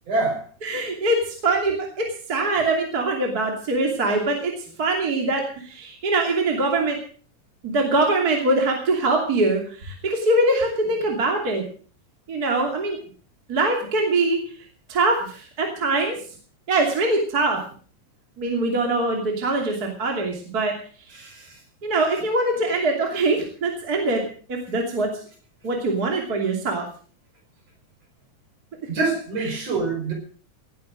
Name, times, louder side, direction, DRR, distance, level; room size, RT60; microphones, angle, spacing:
voice 1, 0.1-0.4 21.1-21.6 28.9-30.1, right 3 dB, 50° right, 2 dB, 6.2 m, -25 dB
voice 2, 0.6-4.5 4.8-7.0 7.6-11.6 12.3-13.0 13.5-14.4 14.9-16.1 16.7-17.6 18.4-20.7 21.1-21.2 21.8-24.2 24.5-25.1 25.6-26.9 29.4-29.6, right 2 dB, 30° right, 1 dB, 3.0 m, -23 dB
18.5 x 10.5 x 6.3 m, 0.44 s
omnidirectional pair, 3.8 m